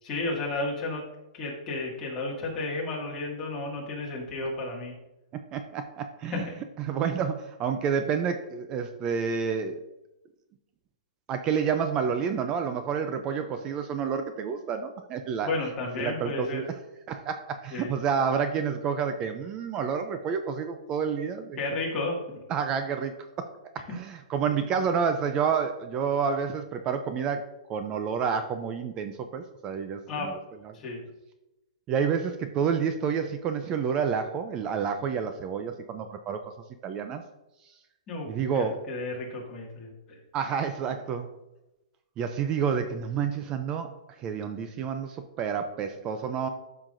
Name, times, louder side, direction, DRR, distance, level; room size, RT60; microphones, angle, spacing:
voice 1, 0.0-1.0 1.3-5.0 6.3-6.5 15.4-16.6 17.7-17.9 21.6-22.4 30.1-30.3 30.7-31.0 38.1-38.3 38.5-40.2, left 2 dB, 20° left, -4 dB, 1.9 m, -32 dB
voice 2, 5.3-6.5 6.8-9.8 11.3-15.5 16.0-16.6 17.1-21.6 22.5-23.5 23.7-30.4 30.6-30.7 31.9-36.4 36.8-37.2 38.3-38.8 40.3-41.3 42.2-43.9 44.2-46.5, right 6 dB, 20° right, 8 dB, 0.4 m, -29 dB
12.0 x 5.8 x 2.6 m, 0.95 s
hypercardioid pair, 165°, 4 cm